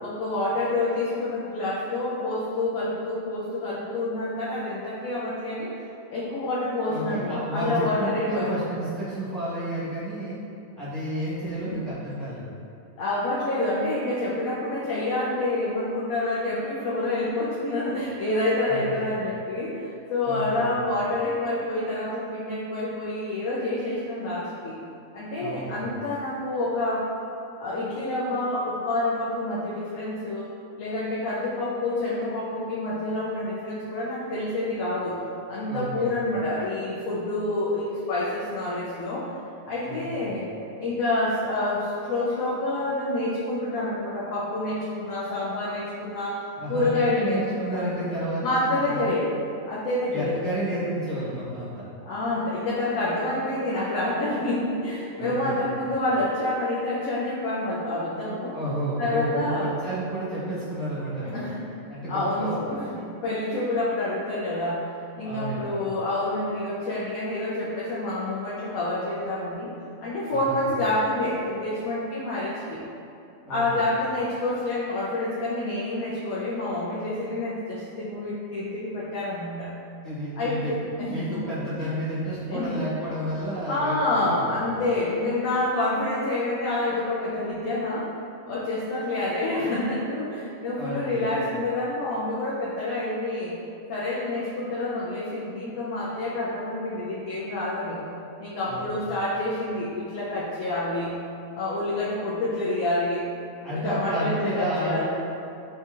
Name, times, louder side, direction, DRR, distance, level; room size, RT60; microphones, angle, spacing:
voice 1, 0.0-8.7 11.7-11.8 13.0-24.8 25.1-27.1 27.6-30.5 30.8-35.2 35.5-39.3 39.7-40.5 40.8-46.4 46.7-47.9 48.4-49.3 49.7-50.4 52.0-58.6 59.0-59.7 61.2-61.7 62.1-64.9 65.2-69.7 70.0-72.8 73.5-79.7 80.4-81.4 81.8-81.9 82.5-82.8 83.7-88.1 88.5-93.6 93.9-98.0 98.4-101.1 101.5-103.2 103.7-105.0, left 2 dB, 85° left, -7 dB, 1.0 m, -28 dB
voice 2, 6.9-10.4 10.8-12.5 18.7-19.0 20.2-20.7 25.4-25.8 35.7-36.1 39.8-40.3 46.6-49.0 50.1-51.9 55.2-55.6 58.5-61.5 61.9-62.5 65.2-65.8 70.3-70.6 73.4-73.9 80.0-80.7 81.1-84.7 90.7-91.3 98.7-99.1 103.6-105.0, right 1 dB, ahead, -12 dB, 1.0 m, -31 dB
5.4 x 2.6 x 2.4 m, 2.7 s
omnidirectional pair, 1.5 m